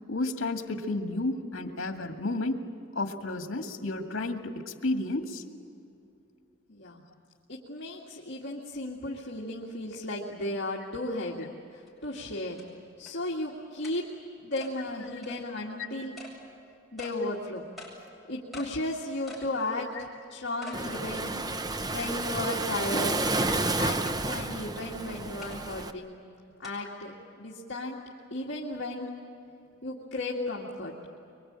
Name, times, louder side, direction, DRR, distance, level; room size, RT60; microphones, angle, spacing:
voice 1, 0.1-2.6 3.0-5.4 15.1-15.2 15.8-15.9 20.0-20.1, left 2 dB, 80° left, 4 dB, 2.0 m, -32 dB
voice 2, 6.7-7.0 7.5-12.6 13.0-14.0 14.4-16.2 16.9-17.7 18.3-21.3 21.8-23.2 23.8-26.2 26.6-28.0 28.3-29.1 29.8-30.9, left 1 dB, 60° left, -4 dB, 2.1 m, -35 dB
sound 1, 11.9-12.0 12.6-12.7 13.1-13.2 13.8-14.0 14.6-14.7 15.2-15.4 16.2-16.3 17.0-17.2 17.8-17.9 18.5-18.7 19.3-19.5 19.9-20.0 20.6-20.8 21.3-21.4 22.0-22.4 23.3-23.4 24.0-24.2 25.4-25.6 26.6-26.7, left 1 dB, ahead, 7.7 m, -45 dB
Waves surf, 20.7-25.9, right 2 dB, 20° right, 0.7 m, -30 dB
24.0 x 24.0 x 8.8 m, 2.7 s
head